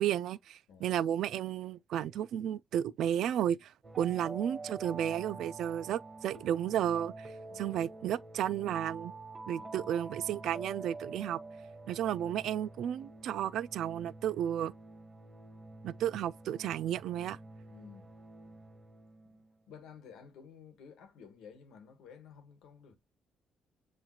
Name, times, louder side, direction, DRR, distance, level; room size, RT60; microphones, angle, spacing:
voice 1, 0.0-9.1 9.5-11.4 11.9-14.7 15.8-17.4, right 10 dB, 80° right, 0.3 m, -33 dB
sound 1, 3.8-19.6, right 3 dB, 30° right, 1.6 m, -48 dB
voice 2, 7.5-7.9 9.6-10.0 17.7-18.1 19.3-19.4 19.7-23.0, left 6 dB, 90° left, 1.2 m, -53 dB
7.2 x 3.0 x 2.4 m
cardioid pair, 90°, 0 cm